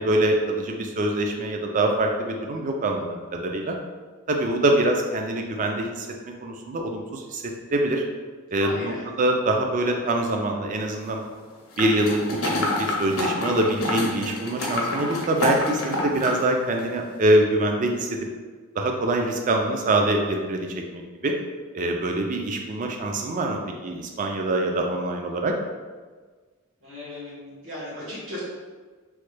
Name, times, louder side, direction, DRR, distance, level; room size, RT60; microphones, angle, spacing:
voice 1, 0.0-3.8 4.3-6.1 6.4-8.0 8.5-11.2 11.8-18.3 18.8-21.3 21.7-25.5, right 1 dB, 35° right, 2 dB, 0.3 m, -24 dB
voice 2, 8.6-9.0 26.8-28.4, left 1 dB, 65° right, -8 dB, 1.3 m, -36 dB
sound 1, 11.8-16.4 16.8-16.9, left 2 dB, 65° left, 0.6 m, -27 dB
3.1 x 2.2 x 3.2 m, 1.4 s
head